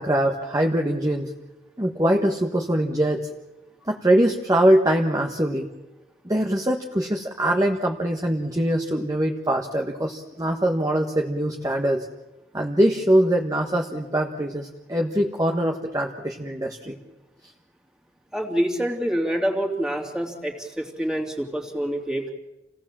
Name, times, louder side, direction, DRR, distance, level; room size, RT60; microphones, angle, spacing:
voice 1, 0.0-1.3 1.8-3.3 3.8-5.7 6.2-12.1 12.5-17.0, right 1 dB, 20° right, 2 dB, 1.3 m, -23 dB
voice 2, 18.3-22.3, equal, 5° right, 0 dB, 2.8 m, -26 dB
28.0 x 17.5 x 7.5 m, 1.0 s
head